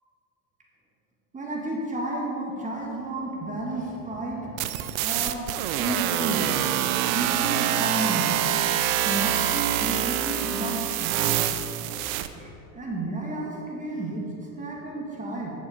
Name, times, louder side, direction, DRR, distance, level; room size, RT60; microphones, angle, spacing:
voice 1, 1.3-6.8 7.1-8.3 9.1-11.3 12.4-15.5, right 2 dB, 15° right, -2 dB, 1.9 m, -32 dB
sound 1, 4.6-12.3, right 11 dB, 70° right, 0.7 m, -26 dB
9.9 x 7.1 x 5.0 m, 3.0 s
supercardioid pair, 115°, 43 cm